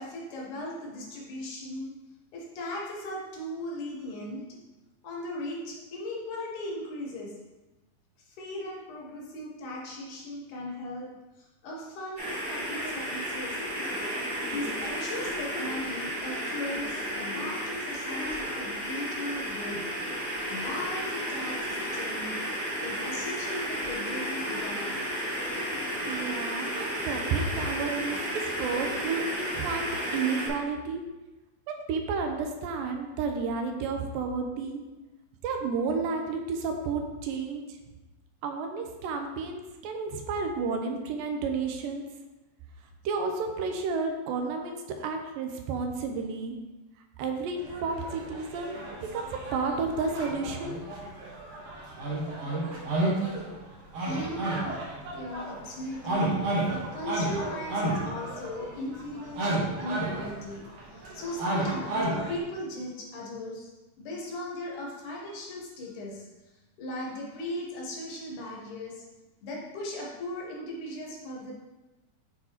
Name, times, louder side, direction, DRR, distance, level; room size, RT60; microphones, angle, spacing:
voice 1, 0.0-1.9 2.3-4.6 5.0-7.4 8.3-13.6 14.5-19.9 20.5-22.4 22.8-25.0 54.0-54.8 55.1-63.7 64.0-69.0 69.4-71.5, left 1 dB, 70° left, -2 dB, 2.2 m, -38 dB
sound 1, 12.2-30.5, equal, 20° right, 1.9 m, -33 dB
voice 2, 26.1-31.0 31.7-34.8 35.4-37.6 38.4-42.0 43.1-46.6 47.2-50.8, right 4 dB, 80° right, 4 dB, 2.2 m, -31 dB
sound 2, 47.6-53.6 53.9-62.4, right 2 dB, 60° right, 1.7 m, -32 dB
9.7 x 4.4 x 2.9 m, 1.1 s
omnidirectional pair, 4.2 m